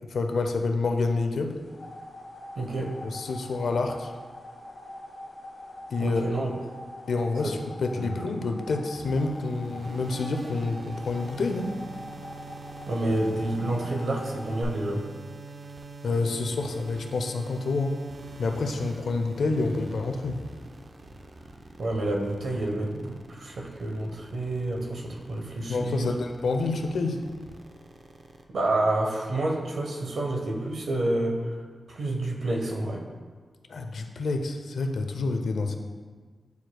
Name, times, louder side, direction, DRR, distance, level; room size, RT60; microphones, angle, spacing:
voice 1, 0.1-1.6 3.1-4.1 5.9-6.2 7.1-11.8 16.0-18.0 18.4-20.4 25.7-27.2 33.7-35.8, left 3 dB, 75° left, 4 dB, 0.5 m, -28 dB
sound 1, 1.5-14.6, left 1 dB, 30° left, 1.3 m, -44 dB
voice 2, 2.6-2.9 6.0-6.5 7.4-7.6 7.9-8.3 12.9-15.0 21.8-26.1 28.5-31.6 31.9-33.0, right 1 dB, 60° right, 0 dB, 0.9 m, -29 dB
sound 2, 8.9-28.4, right 3 dB, 35° right, 0.4 m, -44 dB
9.4 x 4.4 x 2.3 m, 1.5 s
wide cardioid pair, 155°, 0 cm